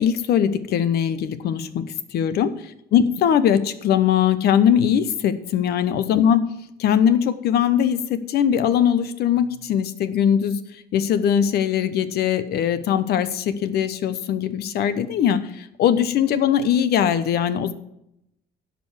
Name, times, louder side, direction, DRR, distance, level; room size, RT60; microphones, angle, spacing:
voice 1, 0.0-1.8 2.1-6.4 6.8-10.6 10.9-17.7, left 9 dB, 70° left, 12 dB, 1.0 m, -21 dB
11.0 x 5.3 x 8.1 m, 0.81 s
cardioid pair, 110°, 17 cm